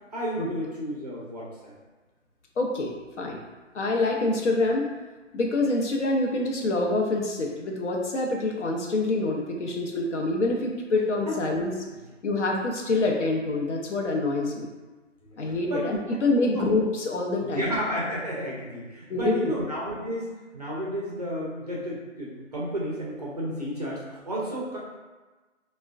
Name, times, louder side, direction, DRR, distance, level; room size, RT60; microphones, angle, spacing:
voice 1, 0.1-1.8 11.3-11.6 12.5-12.6 15.2-15.9 16.4-16.7 17.3-24.8, equal, 35° right, -5 dB, 0.4 m, -32 dB
voice 2, 2.6-3.4 3.7-4.9 5.3-11.7 12.2-14.7 15.4-17.7 19.1-19.5, left 2 dB, 65° left, 0 dB, 0.7 m, -26 dB
3.3 x 2.2 x 2.3 m, 1.3 s
figure-of-eight pair, 155°, 38 cm